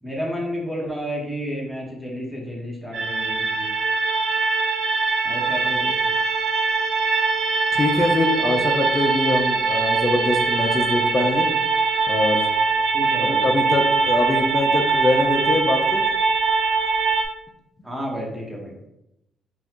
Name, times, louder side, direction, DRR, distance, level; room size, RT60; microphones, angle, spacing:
voice 1, 0.0-3.7 5.2-6.1 12.9-13.4 17.8-18.7, equal, 5° right, -3 dB, 1.4 m, -31 dB
sound 1, 2.9-17.2, right 4 dB, 70° right, 0.6 m, -22 dB
voice 2, 7.7-11.5 12.1-12.5 13.2-16.0, left 2 dB, 35° left, 2 dB, 0.7 m, -23 dB
5.5 x 2.6 x 3.0 m, 0.87 s
cardioid pair, 90°, 0 cm